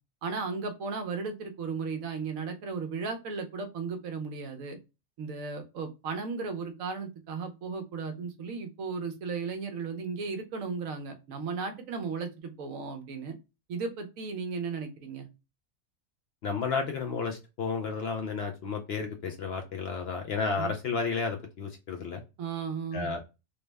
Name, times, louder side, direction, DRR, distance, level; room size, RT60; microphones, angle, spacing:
voice 1, 0.2-4.8 5.2-13.3 13.7-15.3 20.6-20.7 22.4-23.1, right 5 dB, 75° right, 6 dB, 1.1 m, -35 dB
voice 2, 16.4-22.2 22.9-23.2, left 5 dB, 65° left, 4 dB, 0.6 m, -32 dB
3.3 x 2.1 x 3.2 m, 0.27 s
omnidirectional pair, 1.4 m